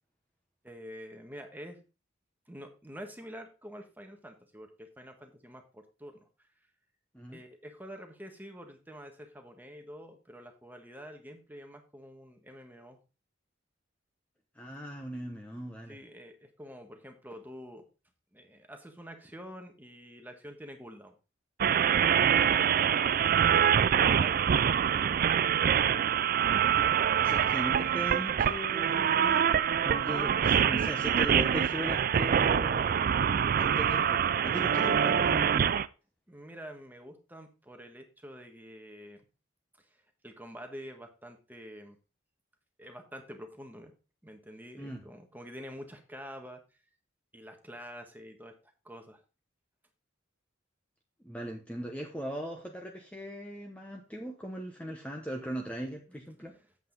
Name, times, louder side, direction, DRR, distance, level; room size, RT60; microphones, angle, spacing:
voice 1, 0.6-1.8 2.5-6.3 7.3-13.0 15.9-17.9 18.3-21.2 22.0-25.5 36.3-39.3 39.8-42.0 42.8-43.9 44.2-46.6 47.3-48.5 48.8-49.2 56.4-56.7, equal, 10° right, 5 dB, 1.4 m, -47 dB
voice 2, 14.5-16.0 22.2-22.4 27.2-29.5 29.8-32.9 33.6-35.6 44.8-45.0 51.2-56.5, equal, 5° left, 1 dB, 1.0 m, -39 dB
sound 1, 21.6-35.9, right 8 dB, 45° right, 0.4 m, -25 dB
8.3 x 7.8 x 3.9 m, 0.32 s
head